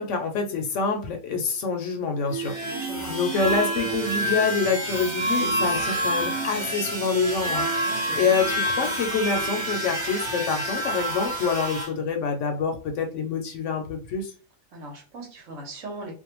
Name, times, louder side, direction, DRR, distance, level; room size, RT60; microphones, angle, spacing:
voice 1, 0.0-2.8 3.1-14.3, left 5 dB, 70° left, 4 dB, 0.9 m, -26 dB
sound 1, 2.3-11.9, right 1 dB, 30° right, 0.5 m, -28 dB
voice 2, 2.6-3.2 7.8-8.3 14.7-16.1, right 2 dB, 65° right, 0 dB, 1.2 m, -39 dB
2.6 x 2.2 x 2.9 m, 0.37 s
omnidirectional pair, 1.4 m